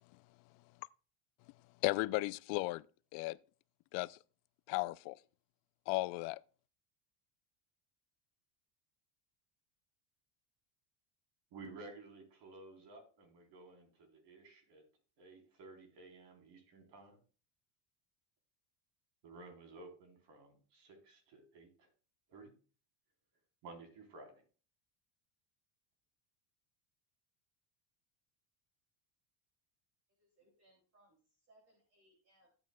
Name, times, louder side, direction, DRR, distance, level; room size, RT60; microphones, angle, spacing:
voice 1, 1.8-2.8 3.1-3.4 3.9-4.2 4.7-5.2 5.9-6.4, left 22 dB, 60° left, 0.5 m, -35 dB
voice 2, 11.5-14.9 15.2-17.2 19.2-21.9 22.3-22.5 23.6-24.3, right 3 dB, 55° right, 4.0 m, -54 dB
voice 3, 30.2-32.5, right 1 dB, 30° right, 2.9 m, -70 dB
14.5 x 8.8 x 2.3 m
cardioid pair, 135°, 49 cm